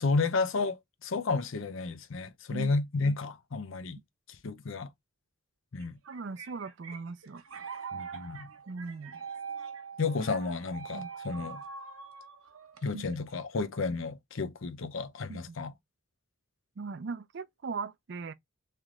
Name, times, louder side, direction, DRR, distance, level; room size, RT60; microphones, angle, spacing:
voice 1, 0.0-4.0 4.4-4.9 5.7-6.0 7.9-8.5 10.0-11.6 12.8-15.7, left 4 dB, 70° left, 0.6 m, -32 dB
sound 1, 5.8-13.3, right 6 dB, 80° right, 0.8 m, -43 dB
voice 2, 6.1-7.4 8.7-9.2 10.9-11.1 12.9-13.0 15.3-15.6 16.8-18.3, right 4 dB, 55° right, 0.4 m, -39 dB
3.3 x 3.0 x 3.6 m
head